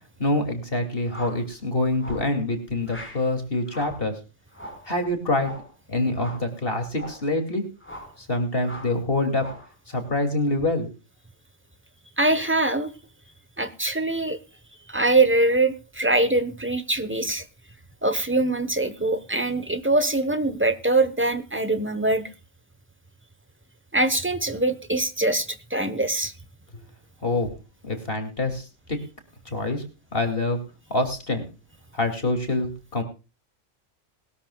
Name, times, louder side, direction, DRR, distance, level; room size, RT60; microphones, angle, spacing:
voice 1, 0.2-4.1 4.9-5.5 5.9-7.6 8.3-9.5 9.9-10.9 27.2-27.5 27.8-29.0 29.5-29.8 30.1-30.6 30.9-31.5 31.9-33.0, left 2 dB, 45° left, 6 dB, 2.9 m, -25 dB
sound 1, 1.1-1.4 2.0-2.3 2.9-3.2 3.7-4.0 4.5-4.9 5.4-5.7 6.1-6.5 6.9-7.3 7.8-8.2 8.6-9.0 9.3-9.7, equal, 10° left, 5.1 m, -41 dB
voice 2, 12.2-12.9 13.6-14.4 14.9-17.4 18.0-22.2 23.9-26.3, right 2 dB, 10° right, 11 dB, 1.1 m, -23 dB
20.5 x 13.0 x 2.4 m, 0.30 s
omnidirectional pair, 1.3 m